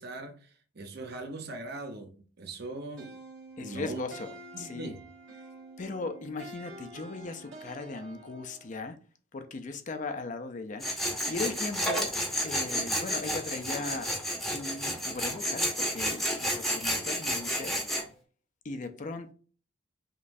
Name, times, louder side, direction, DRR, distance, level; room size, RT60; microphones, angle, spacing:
voice 1, 0.0-3.1 3.6-4.0 4.5-5.0, right 2 dB, 55° right, 0.7 m, -40 dB
sound 1, 3.0-8.8, right 2 dB, 80° right, 1.7 m, -48 dB
voice 2, 3.6-4.9 5.8-9.0 9.3-10.9 11.3-12.2 12.4-14.1 14.5-17.8 18.6-19.3, left 3 dB, 40° left, 0.5 m, -38 dB
Tools, 10.8-18.0, equal, ahead, 0.9 m, -31 dB
5.3 x 3.0 x 2.6 m
head